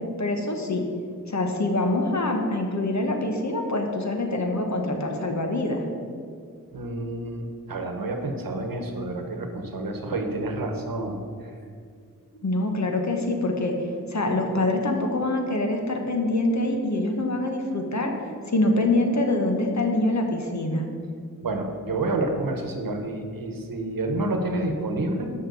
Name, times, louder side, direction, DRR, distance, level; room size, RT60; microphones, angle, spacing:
voice 1, 0.2-0.8 1.3-5.8 12.4-13.7 14.1-18.1 18.5-20.9, left 2 dB, 55° left, 3 dB, 1.3 m, -25 dB
voice 2, 6.7-11.5 21.4-25.3, right 2 dB, 80° right, 4 dB, 1.1 m, -29 dB
6.6 x 5.8 x 7.0 m, 2.2 s
wide cardioid pair, 70°, 34 cm